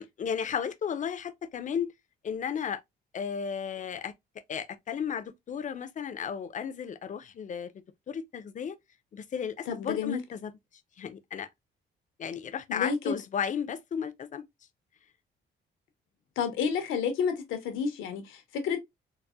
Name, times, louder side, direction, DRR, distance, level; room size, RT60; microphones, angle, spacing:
voice 1, 0.0-1.9 2.2-2.8 3.1-4.1 4.5-7.7 8.1-8.8 9.1-10.5 11.0-11.5 12.2-14.4, left 7 dB, 40° left, 0.4 m, -34 dB
voice 2, 9.7-10.2 12.7-13.1 16.4-18.8, left 6 dB, 90° left, 0.7 m, -30 dB
3.9 x 2.0 x 2.3 m
cardioid pair, 90°, 20 cm